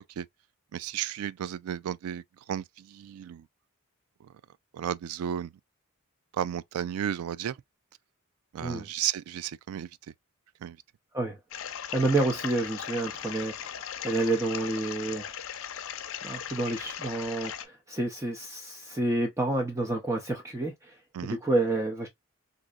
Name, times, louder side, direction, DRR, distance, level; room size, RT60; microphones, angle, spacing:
voice 1, 0.7-3.5 4.2-4.3 4.7-5.5 6.3-7.6 8.5-9.9 10.6-10.8 21.1-21.4, right 9 dB, 85° right, 0.3 m, -33 dB
sound 1, 11.5-17.7, left 9 dB, 65° left, 0.5 m, -38 dB
voice 2, 11.9-13.7 14.0-15.3 16.2-21.0 21.2-22.1, right 2 dB, 15° right, 0.5 m, -29 dB
3.9 x 2.6 x 2.4 m
head